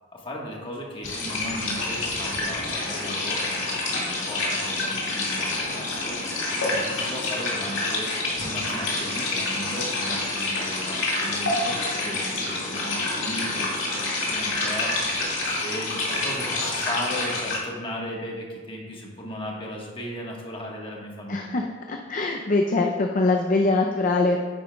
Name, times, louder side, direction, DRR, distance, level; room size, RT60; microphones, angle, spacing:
voice 1, 0.1-8.1 8.4-21.7, equal, 25° left, -2 dB, 1.4 m, -36 dB
sound 1, 1.0-17.6, left 2 dB, 70° left, 2.1 m, -27 dB
voice 2, 21.3-24.4, left 2 dB, 40° left, 2 dB, 0.5 m, -23 dB
10.0 x 9.0 x 2.3 m, 1.5 s
head